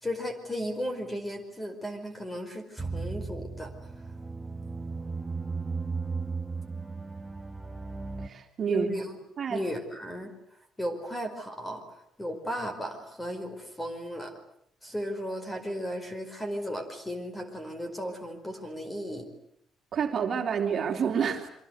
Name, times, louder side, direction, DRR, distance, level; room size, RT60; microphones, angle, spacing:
voice 1, 0.0-3.7 8.7-9.1 9.5-10.3 10.8-14.3 14.8-19.3, equal, 10° left, 8 dB, 4.9 m, -35 dB
sound 1, 2.8-8.3, right 4 dB, 10° right, 1.5 m, -35 dB
voice 2, 8.2-8.9 9.4-9.6 19.9-21.5, right 7 dB, 40° right, 3 dB, 3.4 m, -28 dB
27.5 x 24.5 x 8.2 m, 0.71 s
cardioid pair, 140°, 0 cm